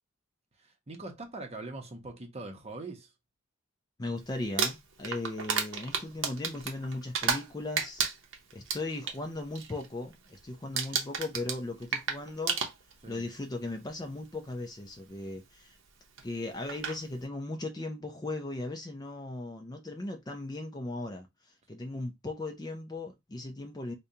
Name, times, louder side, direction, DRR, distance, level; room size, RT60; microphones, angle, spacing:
voice 1, 0.5-3.1 13.0-13.2, right 2 dB, 30° right, 0.7 m, -42 dB
voice 2, 4.0-8.0 8.5-12.6 13.1-15.8 16.2-23.9, left 2 dB, 15° left, 0.4 m, -37 dB
Crumpling crinkling, 4.4-7.5 7.8-9.2 9.5-9.9 10.1-10.4 10.8-13.1 14.1-14.2 16.2-16.3 16.7-17.0, right 6 dB, 55° right, 0.7 m, -32 dB
5.0 x 2.2 x 2.7 m
head